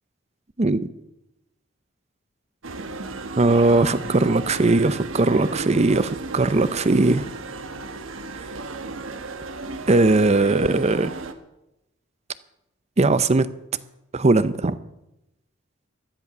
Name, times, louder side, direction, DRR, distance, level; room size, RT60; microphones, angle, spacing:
sound 1, 2.6-11.3, right 3 dB, 80° right, 1.2 m, -34 dB
voice 1, 3.4-7.3 9.9-11.1 13.0-13.5 14.1-14.8, right 2 dB, 35° right, 15 dB, 0.6 m, -19 dB
15.0 x 11.0 x 6.0 m, 0.89 s
head